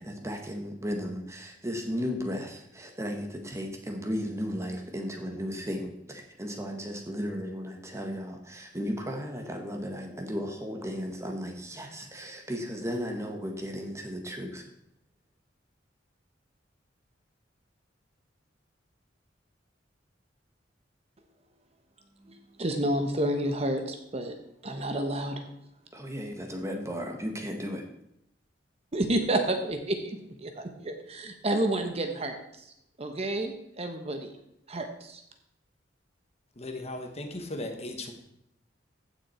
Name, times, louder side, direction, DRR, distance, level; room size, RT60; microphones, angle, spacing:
voice 1, 0.0-14.6 25.9-27.8, equal, 15° right, 1.5 m, -35 dB
voice 2, 22.3-24.4 24.6-25.4 28.9-32.4 33.0-34.3 34.7-35.2, right 1 dB, 35° right, 1.0 m, -30 dB
voice 3, 36.6-38.1, left 2 dB, 35° left, 1.3 m, -37 dB
15.0 x 6.3 x 4.4 m
head